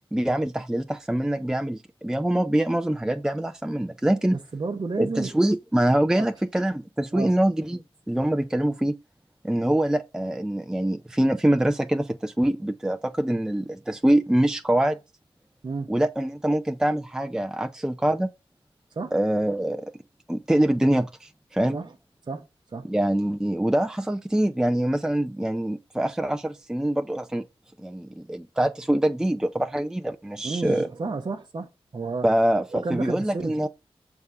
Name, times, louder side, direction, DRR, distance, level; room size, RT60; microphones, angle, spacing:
voice 1, 0.1-4.4 5.0-7.8 8.1-8.9 9.4-15.0 15.9-18.3 19.1-19.9 20.3-21.8 22.9-27.4 27.8-30.9 32.2-33.7, right 1 dB, 5° right, 0.4 m, -24 dB
voice 2, 4.5-5.3 6.1-6.3 7.1-7.4 15.6-15.9 18.9-19.1 21.7-21.9 22.3-22.9 30.4-32.3 32.7-33.6, right 3 dB, 45° right, 0.7 m, -31 dB
6.4 x 3.5 x 5.4 m
wide cardioid pair, 95°, 10 cm